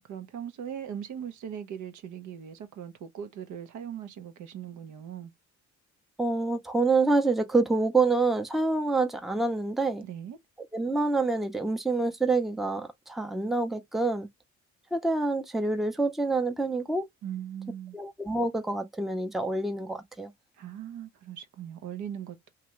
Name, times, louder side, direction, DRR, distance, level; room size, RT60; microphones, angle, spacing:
voice 1, 0.0-5.3 10.0-10.4 17.2-18.0 20.5-22.5, right 9 dB, 75° right, 0.8 m, -39 dB
voice 2, 6.2-10.0 10.7-14.3 14.9-17.1 17.9-20.3, right 3 dB, ahead, 0.6 m, -27 dB
2.8 x 2.5 x 3.0 m
cardioid pair, 90°, 30 cm